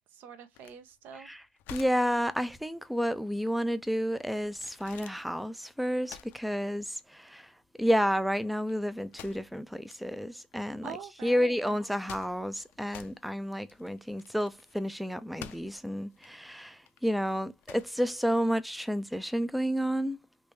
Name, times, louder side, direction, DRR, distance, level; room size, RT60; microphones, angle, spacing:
voice 1, 0.1-1.3 10.8-11.8 12.1-12.2, right 7 dB, 55° right, 0.7 m, -45 dB
sound 1, 0.5-19.1, left 11 dB, 60° left, 0.5 m, -52 dB
voice 2, 1.7-7.5 7.8-10.9 11.2-20.2, equal, ahead, 0.4 m, -30 dB
3.2 x 2.6 x 3.2 m
supercardioid pair, 100°, 4 cm